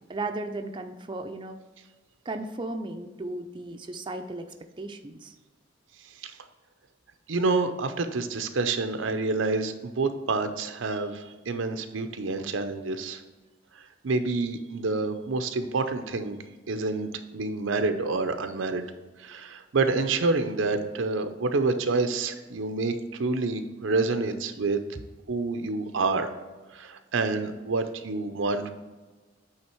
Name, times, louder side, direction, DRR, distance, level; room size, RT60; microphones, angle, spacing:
voice 1, 0.1-1.6 2.3-4.5 4.8-5.3, right 2 dB, 25° right, 5 dB, 0.4 m, -35 dB
voice 2, 7.3-13.2 13.7-16.4 16.7-18.9 19.2-24.8 25.3-26.3 26.7-28.7, right 3 dB, 90° right, 8 dB, 0.6 m, -28 dB
8.7 x 3.5 x 4.5 m, 1.3 s
head